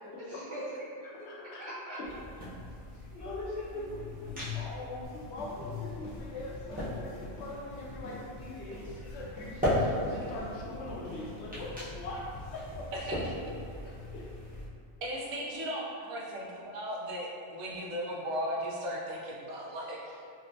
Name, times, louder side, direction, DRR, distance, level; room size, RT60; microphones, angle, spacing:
voice 1, 0.2-2.0 2.9-3.1 3.7-4.0 4.3-4.6, right 1 dB, 55° right, -10 dB, 1.3 m, -43 dB
voice 2, 1.3-1.6 2.0-2.1 3.1-12.2 12.5-12.9 13.8-14.3, left 2 dB, 65° left, -5 dB, 0.8 m, -42 dB
sound 1, 2.0-14.7, left 1 dB, 10° right, 0.6 m, -38 dB
sound 2, 5.0-13.9, left 1 dB, 80° left, 1.1 m, -48 dB
voice 3, 12.9-13.5 15.0-20.2, equal, 80° right, -4 dB, 1.1 m, -37 dB
3.9 x 2.1 x 2.6 m, 2.4 s
omnidirectional pair, 1.4 m